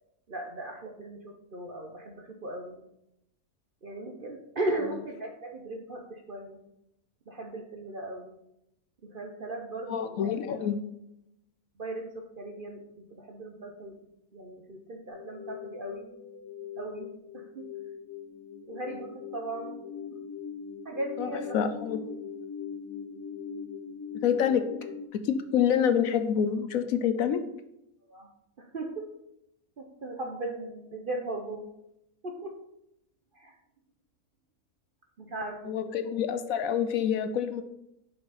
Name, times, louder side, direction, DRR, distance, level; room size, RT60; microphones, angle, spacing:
voice 1, 0.3-2.8 3.8-6.6 7.3-8.3 9.0-10.3 11.8-12.8 13.1-14.0 14.3-16.1 16.8-17.7 18.7-19.8 20.1-20.2 20.8-21.6 28.1-28.3 28.6-29.1 29.8-31.7 32.2-32.6 33.3-33.5 35.2-35.8, right 2 dB, 45° right, 3 dB, 0.7 m, -37 dB
voice 2, 9.9-10.8 21.2-22.0 24.1-24.6 25.1-27.4 35.7-37.6, left 8 dB, 70° left, 9 dB, 1.0 m, -27 dB
sound 1, 15.1-25.1, left 6 dB, 15° left, 0.9 m, -41 dB
6.8 x 5.6 x 4.0 m, 0.81 s
omnidirectional pair, 1.6 m